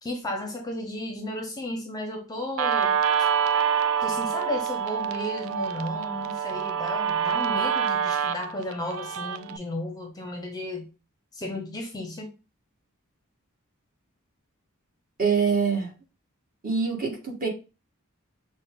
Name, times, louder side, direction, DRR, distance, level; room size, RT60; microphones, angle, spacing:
voice 1, 0.0-3.0 4.0-10.9 11.3-12.3, left 1 dB, 20° left, 0.6 m, -34 dB
Guitar, 2.6-9.6, right 7 dB, 70° right, 0.4 m, -26 dB
voice 2, 15.2-15.9 16.6-17.5, right 5 dB, 40° right, 1.4 m, -24 dB
5.8 x 2.1 x 3.6 m
head